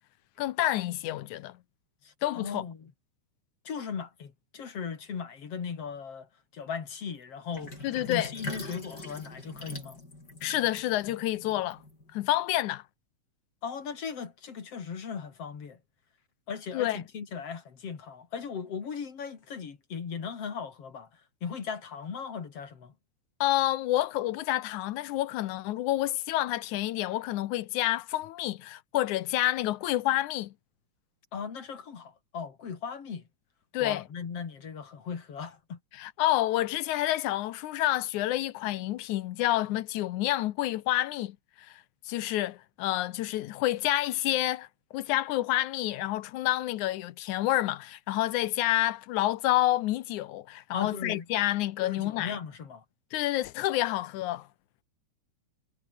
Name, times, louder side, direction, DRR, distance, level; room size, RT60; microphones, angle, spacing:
voice 1, 0.4-1.6 2.2-2.6 7.8-8.3 10.4-11.8 12.1-12.8 16.7-17.0 23.4-30.5 33.7-34.0 35.9-52.4 53.1-54.5, left 15 dB, 80° left, 2.2 m, -29 dB
voice 2, 2.0-2.9 3.7-10.0 13.6-15.8 16.5-21.1 21.4-22.9 31.3-33.3 33.8-35.8 50.7-51.3 51.8-52.8, left 6 dB, 50° left, 3.6 m, -38 dB
Sink (filling or washing), 7.5-12.3, left 2 dB, 30° left, 7.6 m, -42 dB
omnidirectional pair, 3.5 m